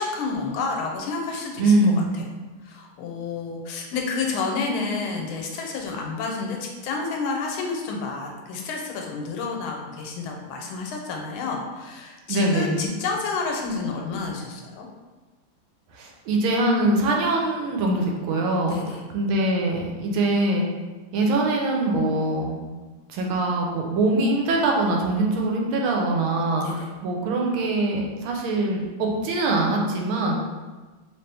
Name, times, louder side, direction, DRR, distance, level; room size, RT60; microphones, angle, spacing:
voice 1, 0.0-1.8 2.1-2.3 2.6-14.9 18.6-19.0 26.6-26.9, left 4 dB, 85° left, 1 dB, 1.5 m, -30 dB
voice 2, 1.6-2.2 12.3-12.9 15.9-18.8 19.1-20.7 21.1-22.6 23.1-30.4, right 2 dB, 85° right, 0 dB, 1.5 m, -23 dB
3.2 x 3.0 x 3.3 m, 1.3 s
omnidirectional pair, 2.3 m